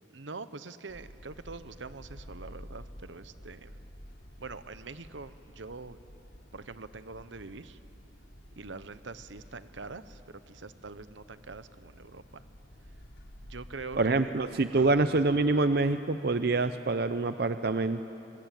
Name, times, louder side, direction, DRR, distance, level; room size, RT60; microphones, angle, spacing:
voice 1, 0.1-3.8 4.4-6.0 6.5-7.8 8.6-10.2 10.5-12.4 13.4-14.3 14.7-15.0, right 4 dB, 80° right, 13 dB, 1.0 m, -44 dB
sound 1, 0.9-14.0, equal, 90° left, 3.4 m, -51 dB
voice 2, 14.0-18.0, right 3 dB, 55° right, 10 dB, 0.6 m, -26 dB
26.0 x 24.0 x 9.2 m, 2.9 s
head